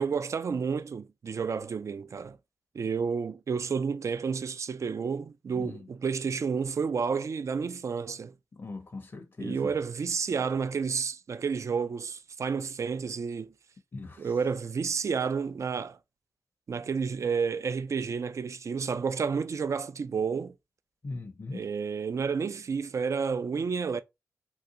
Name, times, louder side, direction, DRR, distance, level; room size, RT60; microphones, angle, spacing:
voice 1, 0.0-2.4 2.7-8.3 9.4-13.5 14.2-16.0 16.7-20.5 21.5-24.0, right 5 dB, 55° right, 0.4 m, -30 dB
voice 2, 8.6-9.7 13.9-14.3 21.0-21.7, left 3 dB, 45° left, 0.6 m, -39 dB
3.8 x 2.3 x 2.7 m
cardioid pair, 45°, 6 cm